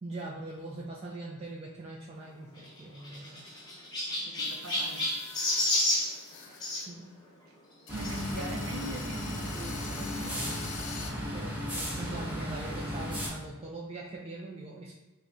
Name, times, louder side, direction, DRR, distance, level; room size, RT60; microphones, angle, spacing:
voice 1, 0.0-3.4 6.9-7.1 11.1-14.9, right 2 dB, 30° right, -4 dB, 0.3 m, -42 dB
Chirp tweet, 2.5-6.8 8.0-8.2 8.9-9.0 9.2-9.3 10.6-10.7, left 1 dB, 20° left, 0.9 m, -31 dB
voice 2, 4.3-5.1 7.9-10.7, equal, 70° right, 1 dB, 0.6 m, -41 dB
sound 1, 4.4-6.9 7.1-7.2 7.9-11.1, left 6 dB, 55° left, 0.5 m, -46 dB
sound 2, 7.9-13.3, equal, 5° right, 0.9 m, -35 dB
3.5 x 2.2 x 3.7 m, 1.1 s
head